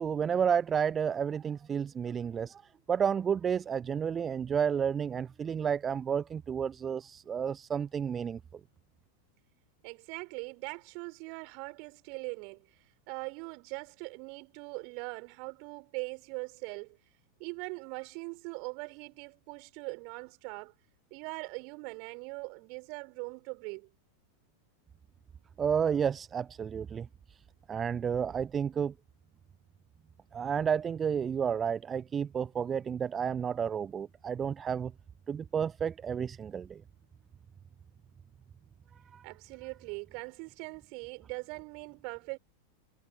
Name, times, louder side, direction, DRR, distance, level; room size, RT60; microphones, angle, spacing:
voice 1, 0.0-2.6 2.9-8.4 25.6-27.1 27.7-28.9 30.3-34.9 35.3-36.8 39.1-39.2, right 7 dB, 20° right, 1.0 m, -31 dB
voice 2, 9.8-12.6 13.1-17.0 17.4-20.7 21.1-23.9 39.2-42.4, right 35 dB, 45° right, 6.1 m, -41 dB
figure-of-eight pair, 90°, 0 cm